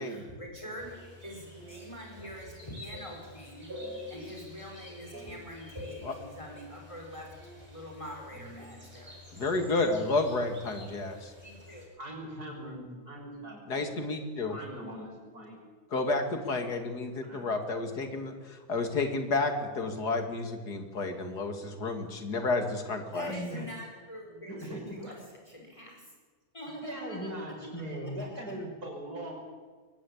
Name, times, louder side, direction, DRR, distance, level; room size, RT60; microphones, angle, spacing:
voice 1, 0.0-3.7 4.1-9.2 11.4-11.9 23.1-25.2 25.5-26.1 26.5-27.7 28.0-28.5, equal, 20° left, 0 dB, 5.0 m, -44 dB
sound 1, 0.8-11.9, left 2 dB, 25° right, 6.6 m, -51 dB
voice 2, 1.6-2.5 2.9-3.0 3.7-4.1 4.9-5.4 5.7-5.9 7.4-7.6 8.3-8.7 9.2-9.4 10.9-11.2 12.0-13.9 14.5-15.6 17.2-17.5 23.2-23.6 24.5-25.1 26.8-29.3, right 1 dB, 75° right, 0 dB, 6.7 m, -41 dB
voice 3, 9.4-11.3 13.7-14.6 15.9-23.3, left 3 dB, 80° left, 6 dB, 2.9 m, -31 dB
23.0 x 18.0 x 8.8 m, 1.5 s
omnidirectional pair, 1.7 m